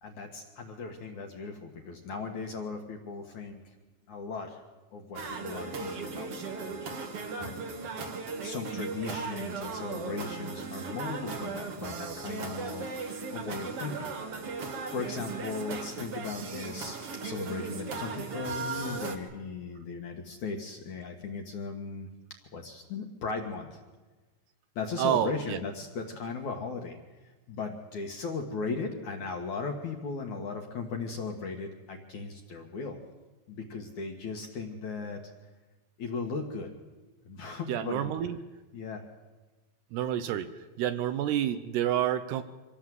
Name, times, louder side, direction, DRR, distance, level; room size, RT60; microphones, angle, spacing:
voice 1, 0.0-3.6 4.1-4.6 4.9-6.5 7.4-7.6 8.4-14.1 14.9-22.1 22.5-23.8 24.8-27.0 27.5-33.0 33.5-35.2 36.0-36.7 37.3-38.2 38.7-39.0, left 4 dB, 60° left, 2 dB, 2.3 m, -37 dB
sound 1, 5.1-19.2, right 4 dB, 50° right, 1.9 m, -37 dB
voice 2, 25.0-25.6 37.7-38.4 39.9-40.5 40.8-42.4, right 11 dB, 75° right, 10 dB, 2.7 m, -29 dB
25.0 x 17.0 x 7.8 m, 1.2 s
omnidirectional pair, 5.2 m